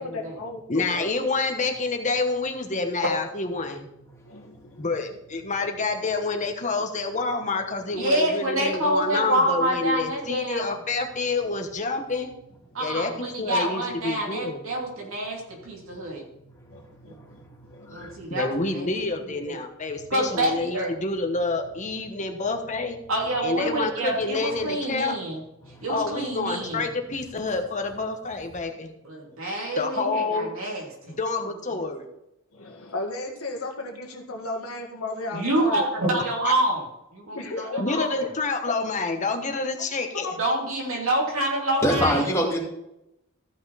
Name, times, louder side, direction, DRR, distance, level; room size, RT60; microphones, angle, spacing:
voice 1, 0.0-1.1 4.3-4.9 16.7-18.1 25.8-26.0 32.5-35.9 37.3-38.0 38.7-38.8 40.2-40.3, left 2 dB, 90° left, 1 dB, 1.7 m, -35 dB
voice 2, 0.7-3.9 4.8-12.3 12.8-14.6 18.3-23.0 23.4-25.2 25.9-28.9 29.8-30.5 31.2-32.1 36.4-36.5 37.8-40.3, left 3 dB, 35° left, 5 dB, 1.2 m, -28 dB
voice 3, 4.1-4.5 17.1-18.1 25.6-25.9 41.8-42.6, equal, 15° left, -3 dB, 2.4 m, -26 dB
voice 4, 7.9-10.6 12.7-16.2 17.1-17.2 17.9-18.9 19.2-19.5 20.1-20.9 23.1-25.4 25.8-26.8 29.0-31.1 35.3-36.8 37.1-38.2 40.4-42.3, right 1 dB, 70° right, -2 dB, 2.8 m, -27 dB
14.0 x 5.8 x 4.1 m, 0.85 s
head